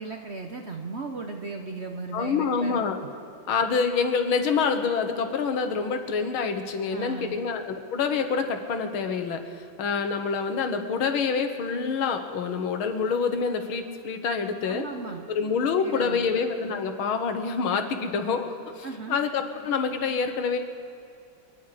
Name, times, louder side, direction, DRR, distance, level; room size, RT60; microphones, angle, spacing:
voice 1, 0.0-2.8 6.9-7.4 14.6-15.3 15.8-16.3 18.8-19.2, right 3 dB, 45° right, 3 dB, 0.9 m, -36 dB
voice 2, 2.1-3.0 3.5-14.8 15.3-20.6, left 5 dB, 85° left, 6 dB, 2.0 m, -27 dB
29.0 x 9.8 x 4.9 m, 2.6 s
omnidirectional pair, 2.2 m